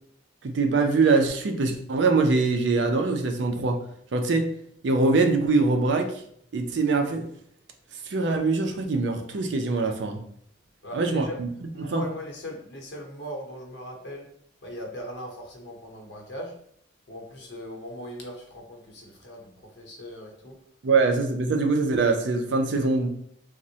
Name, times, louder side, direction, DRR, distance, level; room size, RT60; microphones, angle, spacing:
voice 1, 0.4-3.8 4.1-4.4 4.8-6.1 6.5-7.2 8.1-10.2 10.9-11.5 11.8-12.0 20.8-23.1, right 3 dB, 65° right, 4 dB, 0.4 m, -23 dB
voice 2, 10.8-11.3 11.7-14.2 14.6-16.5 17.1-20.6, equal, 60° left, 0 dB, 0.8 m, -39 dB
3.5 x 2.0 x 2.7 m, 0.66 s
head